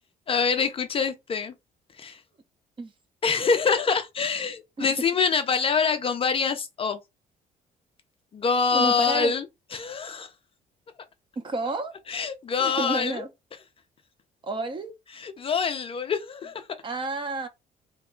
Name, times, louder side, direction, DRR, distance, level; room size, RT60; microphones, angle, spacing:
voice 1, 0.3-1.5 2.0-2.2 3.2-7.0 8.3-9.4 9.7-10.3 12.1-13.2 15.1-16.7, left 5 dB, 35° left, 0.5 m, -25 dB
voice 2, 8.7-9.3 11.4-11.9 12.6-13.3 14.4-14.9 16.8-17.5, right 3 dB, 30° right, 0.7 m, -30 dB
2.9 x 2.2 x 3.6 m
cardioid pair, 110°, 17 cm